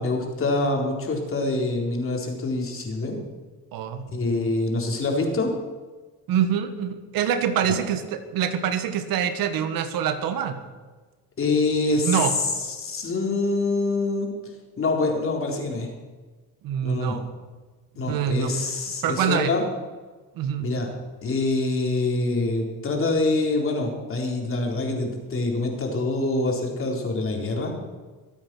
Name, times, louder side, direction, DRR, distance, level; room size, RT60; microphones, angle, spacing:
voice 1, 0.0-3.2 4.1-5.5 7.7-7.8 11.4-12.2 12.8-14.3 14.8-15.9 16.8-17.2 18.0-19.6 20.6-20.9 21.2-27.7, left 2 dB, 35° left, 1 dB, 4.0 m, -25 dB
voice 2, 3.7-4.0 6.3-10.6 12.0-12.3 16.6-17.3 18.0-18.5 19.0-19.5 20.3-20.7, right 8 dB, 70° right, 9 dB, 1.6 m, -25 dB
23.5 x 8.6 x 6.2 m, 1.3 s
cardioid pair, 110°, 36 cm